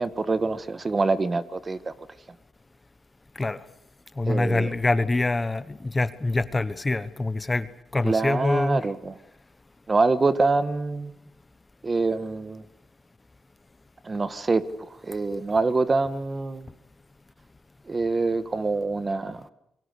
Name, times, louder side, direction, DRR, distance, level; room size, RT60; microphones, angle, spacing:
voice 1, 0.0-1.9 4.3-4.7 8.0-9.2 9.9-11.1 11.8-12.6 14.0-16.7 17.9-19.5, right 3 dB, 30° right, 13 dB, 1.4 m, -25 dB
voice 2, 4.2-7.7 7.9-8.9, left 2 dB, 20° left, 14 dB, 1.0 m, -25 dB
29.0 x 23.0 x 6.8 m, 0.81 s
cardioid pair, 90°, 0 cm